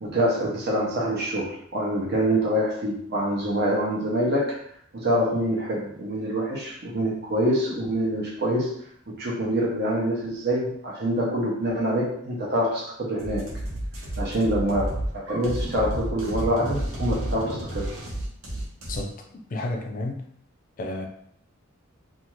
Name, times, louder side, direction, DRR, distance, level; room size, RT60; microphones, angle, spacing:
voice 1, 0.0-4.6 4.9-8.7 9.1-13.4 14.2-14.9 15.1-17.9, equal, 50° right, -4 dB, 0.7 m, -25 dB
sound 1, 13.2-19.0, right 1 dB, 75° right, 0.9 m, -31 dB
voice 2, 19.5-20.3 20.8-21.1, left 2 dB, 40° left, 3 dB, 0.4 m, -31 dB
2.5 x 2.4 x 3.0 m, 0.68 s
head